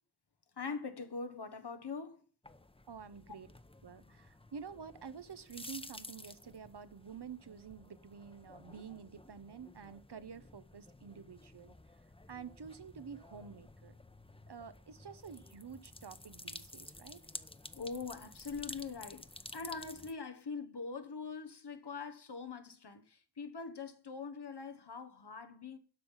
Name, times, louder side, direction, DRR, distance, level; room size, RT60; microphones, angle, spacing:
voice 1, 0.6-2.2 17.7-19.3 19.5-25.8, left 4 dB, 85° left, 1.3 m, -43 dB
sound 1, 2.4-20.1, left 2 dB, 15° left, 0.8 m, -52 dB
voice 2, 2.9-3.5 3.8-11.7 12.3-13.9 14.5-17.2, right 6 dB, 80° right, 0.9 m, -49 dB
12.0 x 5.6 x 7.2 m
wide cardioid pair, 60°, 39 cm